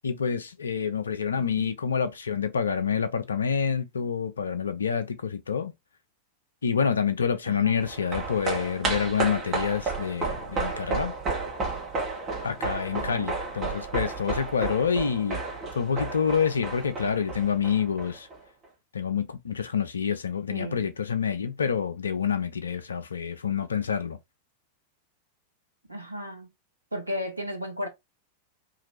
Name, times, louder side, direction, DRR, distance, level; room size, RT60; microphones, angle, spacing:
voice 1, 0.0-5.7 6.6-11.1 12.4-15.4 15.7-18.3 18.9-24.2, left 7 dB, 70° left, 0.5 m, -27 dB
voice 2, 7.5-7.8 12.9-13.3 20.5-20.9 25.9-26.5 26.9-27.9, equal, 85° right, 0.7 m, -34 dB
sound 1, 7.8-18.4 18.6-18.7, right 3 dB, 30° right, 1.2 m, -32 dB
2.8 x 2.6 x 2.8 m
figure-of-eight pair, 90°, 0 cm